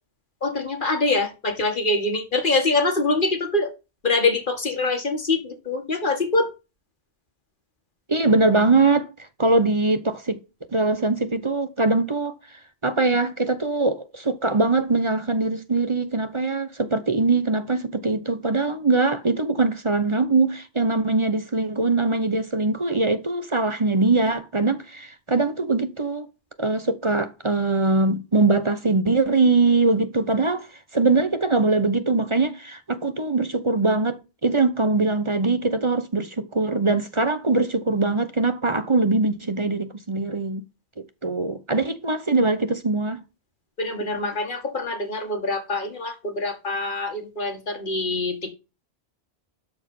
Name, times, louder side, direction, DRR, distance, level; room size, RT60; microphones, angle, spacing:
voice 1, 0.4-3.7 4.0-6.5 43.8-48.5, left 2 dB, 50° left, 2.2 m, -24 dB
voice 2, 8.1-9.1 9.4-10.4 10.7-12.3 12.8-26.3 26.6-30.7 30.9-40.6 41.2-43.2, right 3 dB, 30° right, 0.9 m, -22 dB
12.5 x 4.5 x 5.5 m
omnidirectional pair, 1.1 m